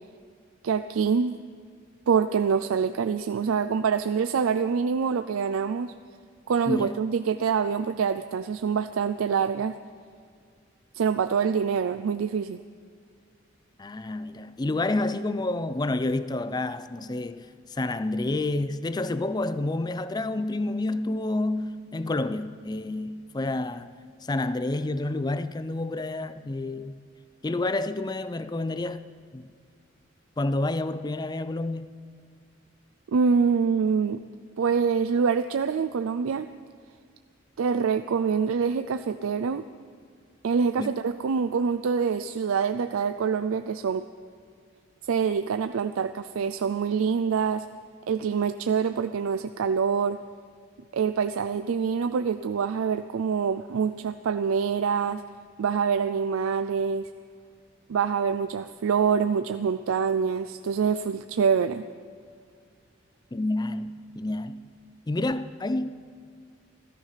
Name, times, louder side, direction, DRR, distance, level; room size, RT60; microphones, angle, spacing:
voice 1, 0.6-1.3 2.1-5.9 6.5-9.8 10.9-12.6 33.1-34.2 34.6-36.5 37.6-39.6 40.4-44.1 45.1-47.7 48.1-50.2 50.9-55.2 55.6-57.1 57.9-61.8, right 6 dB, 90° right, 0.4 m, -25 dB
voice 2, 6.7-7.0 13.8-23.9 24.3-27.0 27.4-29.0 29.3-29.5 30.4-32.0 40.8-40.9 63.3-64.7 65.1-65.9, left 2 dB, 20° left, 0.4 m, -29 dB
15.0 x 13.5 x 5.7 m
head